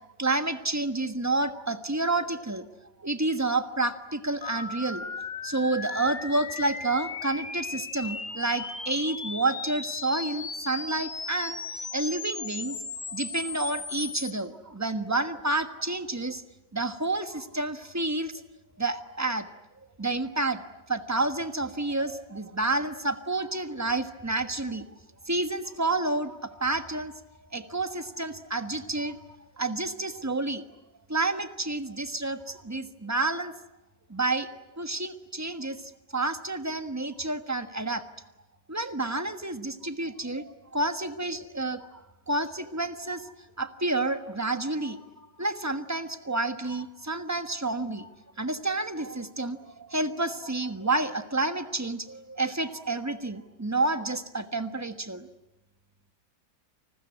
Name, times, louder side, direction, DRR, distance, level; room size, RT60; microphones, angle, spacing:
voice 1, 0.2-2.7 3.0-5.1 5.4-12.8 13.1-16.4 16.7-18.4 18.8-19.5 20.0-20.6 20.9-24.8 25.3-27.2 27.5-29.3 29.6-30.6 31.1-33.5 34.1-34.5 34.8-38.0 38.7-41.9 42.3-43.3 43.6-48.1 48.4-55.3, right 2 dB, 10° right, 9 dB, 1.1 m, -29 dB
sound 1, 4.4-14.3, left 4 dB, 35° left, 1.5 m, -37 dB
29.0 x 20.5 x 9.9 m, 0.98 s
omnidirectional pair, 2.0 m